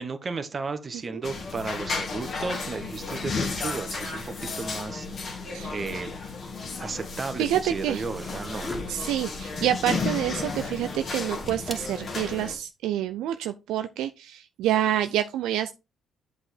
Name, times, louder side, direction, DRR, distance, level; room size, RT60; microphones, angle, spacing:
voice 1, 0.0-5.4 5.7-6.1 6.8-8.7, right 4 dB, 35° right, 1.4 m, -34 dB
sound 1, 1.2-12.5, left 4 dB, 50° left, 2.4 m, -33 dB
voice 2, 7.4-8.1 8.9-15.7, right 11 dB, 75° right, 0.4 m, -27 dB
sound 2, 7.7-12.5, left 1 dB, 20° left, 2.5 m, -42 dB
7.9 x 4.9 x 4.4 m
hypercardioid pair, 55°, 0 cm